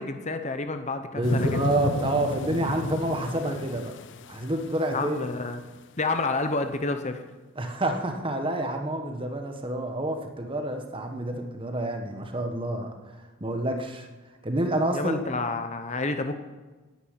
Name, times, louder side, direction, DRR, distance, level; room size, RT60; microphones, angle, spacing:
voice 1, 0.0-1.6 4.9-5.6 6.0-7.2 14.9-16.4, left 3 dB, 35° left, 8 dB, 0.9 m, -29 dB
voice 2, 1.1-3.9 4.3-5.2 7.5-12.9 13.4-14.1 14.4-15.2, right 1 dB, 25° right, 5 dB, 1.5 m, -28 dB
sound 1, 1.2-5.2 5.8-5.9, left 3 dB, 55° left, 0.6 m, -33 dB
10.5 x 9.6 x 9.8 m, 1.2 s
head